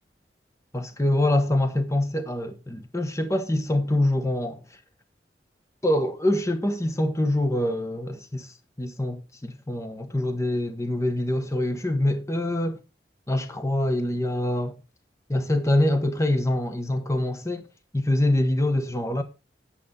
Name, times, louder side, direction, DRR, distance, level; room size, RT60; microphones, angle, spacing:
voice 1, 0.7-4.8 5.8-12.8 13.3-14.8 15.3-17.7 17.9-19.2, left 1 dB, 15° left, 1.0 m, -25 dB
8.9 x 7.2 x 5.3 m
head